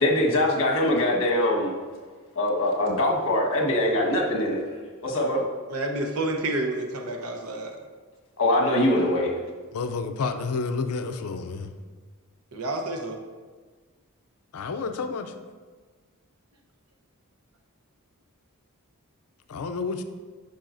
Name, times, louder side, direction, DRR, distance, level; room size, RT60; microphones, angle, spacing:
voice 1, 0.0-1.7 2.3-4.6 5.0-5.4 8.4-9.3, left 1 dB, 65° left, -1 dB, 1.4 m, -23 dB
voice 2, 5.7-7.7 12.5-13.2, right 2 dB, 85° right, 2 dB, 0.9 m, -29 dB
voice 3, 9.7-11.7 14.5-15.3 19.5-20.0, left 4 dB, 85° left, 8 dB, 0.5 m, -30 dB
10.5 x 5.5 x 2.6 m, 1.5 s
head